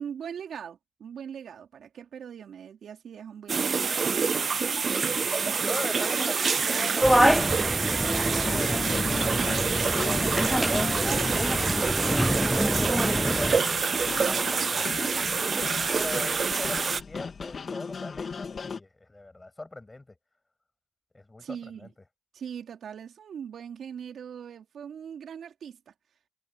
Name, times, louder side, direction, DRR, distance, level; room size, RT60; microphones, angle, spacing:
voice 1, 0.0-3.9 21.4-21.9 22.3-25.9, right 8 dB, 70° right, 3.4 m, -40 dB
sound 1, 3.5-17.0, right 5 dB, 45° right, 0.6 m, -27 dB
voice 2, 4.9-5.3 5.6-9.4 9.8-11.2 12.1-15.5 15.9-20.0 21.1-21.9, left 2 dB, 20° left, 7.9 m, -41 dB
sound 2, 7.0-13.6, equal, 5° right, 0.3 m, -26 dB
sound 3, 8.4-18.8, left 5 dB, 50° left, 3.1 m, -37 dB
cardioid pair, 80°, 0 cm